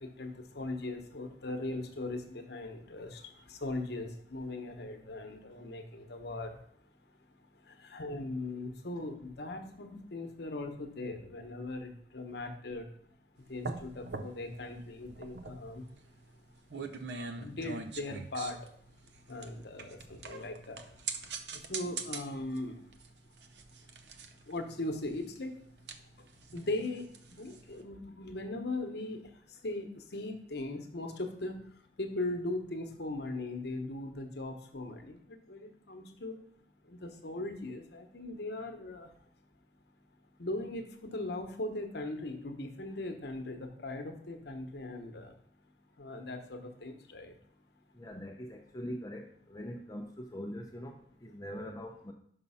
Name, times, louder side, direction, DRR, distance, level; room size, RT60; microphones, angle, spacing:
voice 1, 0.0-6.6 7.6-12.9 13.5-15.9 17.2-18.7 19.3-20.8 21.5-22.8 24.5-25.5 26.2-26.3 26.5-29.2 29.5-31.7 32.0-36.4 36.8-39.1 40.4-45.3 46.0-47.3, left 2 dB, 65° left, 5 dB, 1.0 m, -39 dB
sound 1, 13.4-27.8, right 4 dB, 70° right, 0.6 m, -44 dB
voice 2, 48.0-52.1, equal, 20° left, 1 dB, 0.5 m, -42 dB
5.6 x 5.3 x 5.5 m, 0.64 s
head